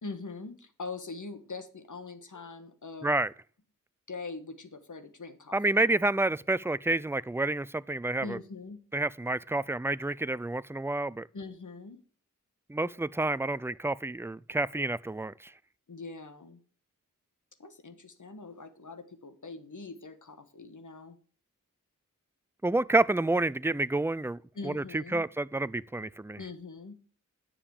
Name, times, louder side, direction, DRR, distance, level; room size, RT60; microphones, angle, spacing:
voice 1, 0.0-3.1 4.1-5.6 6.6-6.7 8.2-8.8 11.3-12.0 13.3-13.4 15.9-16.6 17.6-21.2 24.6-25.3 26.4-27.0, left 4 dB, 65° left, 1.6 m, -42 dB
voice 2, 5.5-8.4 8.9-11.3 12.7-15.5 22.6-24.4 24.6-26.4, right 2 dB, 10° right, 0.4 m, -29 dB
10.0 x 7.2 x 4.9 m
wide cardioid pair, 60°, 33 cm